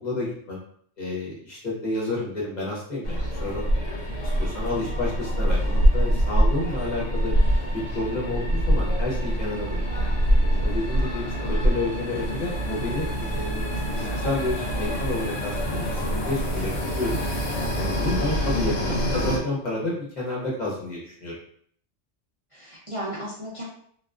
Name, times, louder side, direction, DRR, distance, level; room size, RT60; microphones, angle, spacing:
voice 1, 0.0-0.6 1.0-3.8 4.2-7.3 7.7-9.8 10.5-17.2 17.7-21.3, left 2 dB, 45° left, -5 dB, 0.8 m, -30 dB
sound 1, 3.0-19.4, equal, 85° left, 1.0 m, -25 dB
voice 2, 18.5-19.0 22.5-23.6, left 1 dB, 60° right, -7 dB, 0.3 m, -34 dB
2.3 x 2.3 x 2.3 m, 0.62 s
omnidirectional pair, 1.2 m